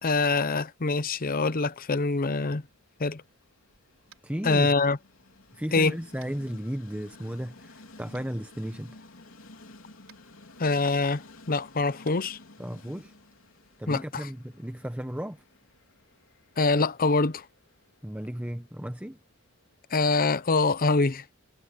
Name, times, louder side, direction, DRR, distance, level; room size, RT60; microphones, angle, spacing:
voice 1, 0.0-2.6 3.0-3.2 4.4-5.0 5.7-5.9 10.6-12.4 13.9-14.3 16.6-17.4 19.9-21.2, left 3 dB, 45° left, 0.8 m, -25 dB
Train, 2.4-20.3, left 2 dB, 75° left, 4.0 m, -54 dB
Tap, 4.1-4.3 6.2-6.4 8.1-8.2 10.0-10.2 12.0-12.2, right 9 dB, 85° right, 4.4 m, -55 dB
voice 2, 4.2-4.7 5.5-9.0 12.6-13.1 13.8-15.4 18.0-19.2, equal, 5° right, 1.1 m, -35 dB
head